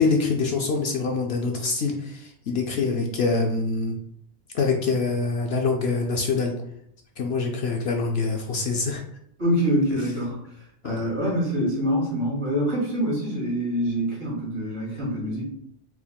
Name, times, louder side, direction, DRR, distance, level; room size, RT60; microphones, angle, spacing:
voice 1, 0.0-4.0 4.5-6.5 7.2-9.0 10.8-11.0, left 4 dB, 65° left, 2 dB, 0.6 m, -25 dB
voice 2, 9.4-10.4 10.8-15.4, equal, 45° right, -5 dB, 2.0 m, -25 dB
4.4 x 3.6 x 2.2 m, 0.71 s
omnidirectional pair, 1.5 m